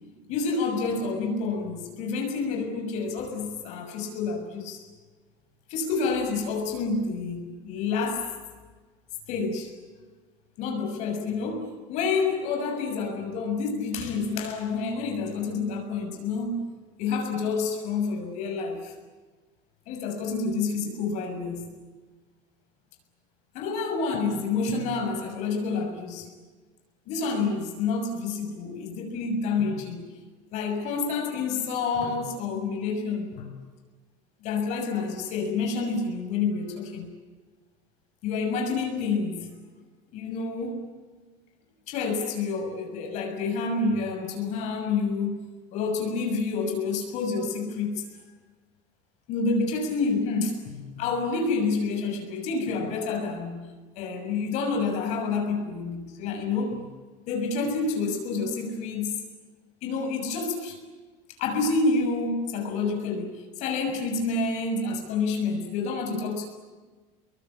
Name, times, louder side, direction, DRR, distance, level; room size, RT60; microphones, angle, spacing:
voice 1, 0.3-4.8 5.7-8.3 9.3-9.7 10.6-16.7 17.0-18.9 19.9-21.7 23.5-26.3 27.1-30.0 30.5-33.6 34.4-37.1 38.2-39.5 40.1-40.9 41.9-48.1 49.3-53.7 53.9-56.9 57.3-59.2 59.8-60.8 61.4-66.5, left 4 dB, 50° left, 3 dB, 6.8 m, -28 dB
29.0 x 23.5 x 8.6 m, 1.3 s
cardioid pair, 165°, 15 cm